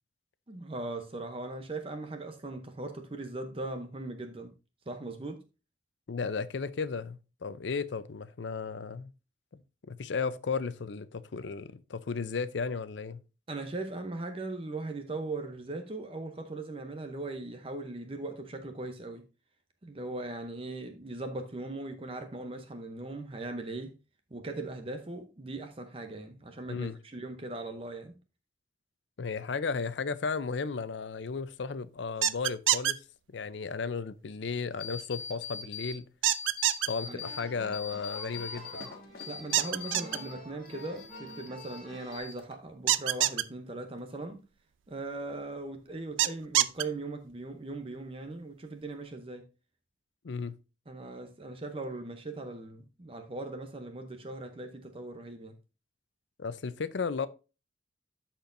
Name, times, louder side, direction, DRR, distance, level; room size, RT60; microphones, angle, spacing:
voice 1, 0.5-4.5 4.9-5.4 13.5-19.2 19.8-24.0 24.3-28.2 37.0-37.2 39.3-44.4 44.9-49.5 50.9-55.6, right 2 dB, 30° right, 0.7 m, -39 dB
voice 2, 6.1-9.1 9.9-13.2 26.7-27.0 29.2-33.0 33.3-36.1 36.9-38.9 50.2-50.5 56.4-57.3, left 5 dB, 70° left, 0.5 m, -34 dB
sound 1, 32.2-32.9 36.2-36.9 39.5-40.2 42.9-43.4 46.2-46.8, right 14 dB, 90° right, 0.4 m, -25 dB
sound 2, 34.8-35.9 36.3-37.4 37.7-40.3 40.6-41.8 42.1-42.7, left 6 dB, 55° left, 1.3 m, -42 dB
sound 3, 37.2-42.2, equal, 5° left, 5.0 m, -48 dB
13.0 x 4.4 x 2.6 m
head